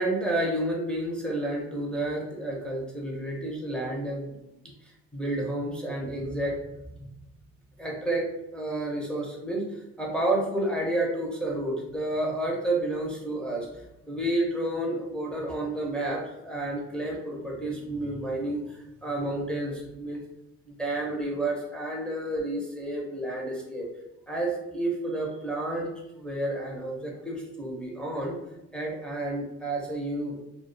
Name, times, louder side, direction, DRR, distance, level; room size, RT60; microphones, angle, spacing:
voice 1, 0.0-4.3 5.1-6.6 7.8-8.3 8.5-9.6 10.0-13.7 14.1-20.2 20.8-23.9 24.3-28.4 28.7-30.3, right 1 dB, 5° left, -4 dB, 0.5 m, -30 dB
2.3 x 2.1 x 2.5 m, 0.89 s
cardioid pair, 110°, 32 cm